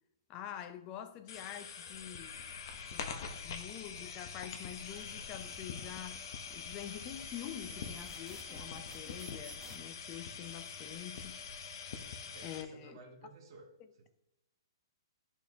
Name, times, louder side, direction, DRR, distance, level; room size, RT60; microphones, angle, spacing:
voice 1, 0.3-2.6 2.9-6.3 6.5-11.4 12.4-13.0, left 10 dB, 30° left, 0.5 m, -46 dB
sound 1, 1.3-12.6, left 6 dB, 55° left, 0.8 m, -44 dB
sound 2, 4.8-9.8, right 3 dB, 10° right, 0.9 m, -56 dB
voice 2, 12.3-13.7, right 3 dB, 55° right, 1.3 m, -54 dB
10.5 x 4.4 x 2.8 m
hypercardioid pair, 145°, 3 cm